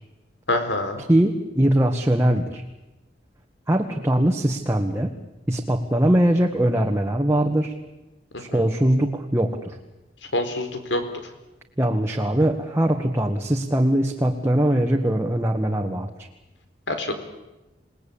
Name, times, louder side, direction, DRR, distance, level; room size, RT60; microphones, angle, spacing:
voice 1, 0.5-1.0 8.3-8.4 10.3-11.0 16.9-17.1, left 1 dB, 85° left, 7 dB, 4.4 m, -25 dB
voice 2, 1.1-2.6 3.7-5.1 5.5-7.7 8.4-9.8 11.8-16.1, right 1 dB, 15° right, 2 dB, 1.7 m, -21 dB
28.5 x 19.5 x 8.7 m, 1.0 s
head